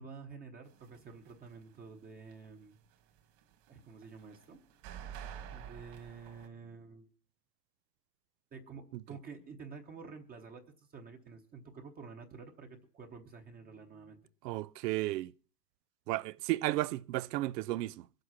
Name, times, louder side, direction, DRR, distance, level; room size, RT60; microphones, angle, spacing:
voice 1, 0.0-2.8 3.7-4.6 5.5-7.1 8.5-14.2, right 5 dB, 20° right, 1.0 m, -50 dB
sound 1, 0.7-1.9 2.1-6.5, right 9 dB, 50° right, 2.2 m, -48 dB
voice 2, 14.4-15.3 16.1-18.1, right 18 dB, 90° right, 0.6 m, -33 dB
21.5 x 7.9 x 5.8 m
supercardioid pair, 155°, 47 cm